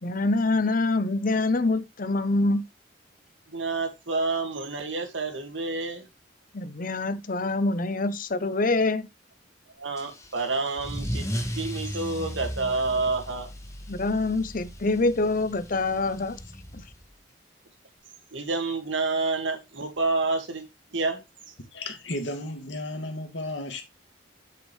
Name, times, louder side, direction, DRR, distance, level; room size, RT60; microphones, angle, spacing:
voice 1, 0.0-2.6 6.5-9.1 13.9-16.4 16.7-16.8, left 2 dB, 45° left, 0.8 m, -25 dB
voice 2, 3.5-6.1 9.8-13.5 18.3-21.5, right 3 dB, 85° right, 2.2 m, -29 dB
Car / Engine starting / Accelerating revving vroom, 10.0-17.1, equal, 15° left, 1.6 m, -36 dB
voice 3, 21.7-23.8, left 1 dB, 75° left, 2.3 m, -34 dB
8.3 x 6.7 x 3.3 m
head